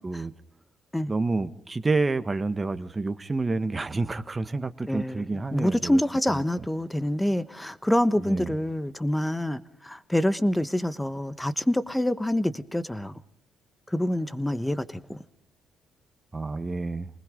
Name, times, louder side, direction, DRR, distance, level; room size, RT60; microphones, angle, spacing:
voice 1, 1.1-6.0 6.3-6.4 8.2-8.5 16.3-17.1, right 3 dB, 25° right, 11 dB, 1.3 m, -29 dB
voice 2, 4.9-5.3 5.5-13.1 13.9-15.2, left 1 dB, 5° left, 15 dB, 1.2 m, -26 dB
28.0 x 20.5 x 5.2 m, 0.70 s
cardioid pair, 90°, 0 cm